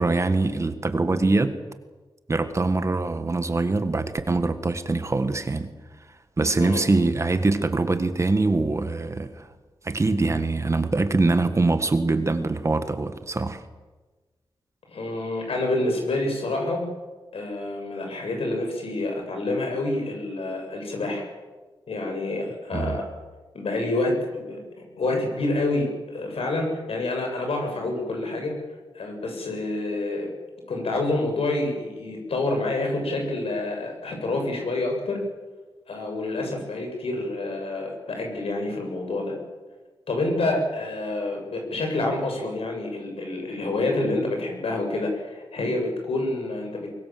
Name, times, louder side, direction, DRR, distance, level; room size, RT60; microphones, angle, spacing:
voice 1, 0.0-1.5 2.3-5.7 6.4-9.5 9.8-13.6 22.7-23.0, right 3 dB, 30° right, 1.5 m, -23 dB
voice 2, 14.9-16.8 17.3-21.2 21.9-23.0 23.5-24.6 25.0-28.5 28.9-30.3 30.7-35.2 35.9-39.4 40.1-46.9, left 2 dB, 80° left, 7.6 m, -27 dB
24.0 x 22.5 x 7.7 m
wide cardioid pair, 155°, 10 cm